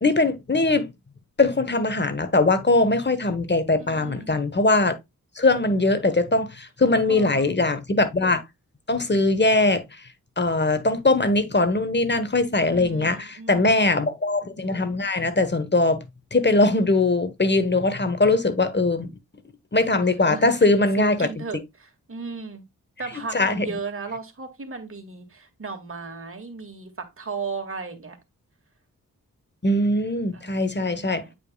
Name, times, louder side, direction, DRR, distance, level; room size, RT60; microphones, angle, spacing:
voice 1, 0.0-0.9 1.4-4.9 5.4-8.4 8.9-9.8 10.4-16.0 16.3-19.1 19.7-21.4 23.3-23.7 29.6-31.2, left 2 dB, 30° left, 1.3 m, -21 dB
voice 2, 3.8-4.4 7.1-7.5 12.7-13.9 20.2-20.6 21.0-22.6 23.0-28.2 30.3-31.3, right 4 dB, 40° right, 2.2 m, -36 dB
8.8 x 5.2 x 2.3 m
cardioid pair, 55°, 33 cm